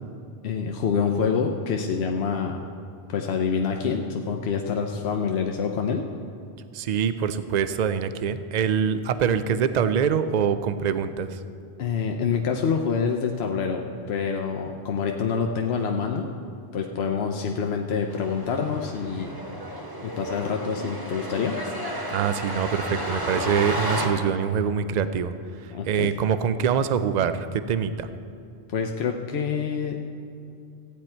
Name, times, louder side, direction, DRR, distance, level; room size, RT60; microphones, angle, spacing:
voice 1, 0.4-2.6 3.1-6.0 11.8-16.3 16.7-19.3 20.0-21.6 25.7-26.1 28.7-30.0, left 6 dB, 80° left, 2 dB, 0.9 m, -26 dB
voice 2, 6.7-11.4 22.1-25.3 25.6-28.1, right 7 dB, 55° right, 11 dB, 0.6 m, -24 dB
sound 1, 18.1-24.1, equal, 20° right, 1.4 m, -32 dB
15.0 x 9.4 x 4.4 m, 2.6 s
omnidirectional pair, 1.1 m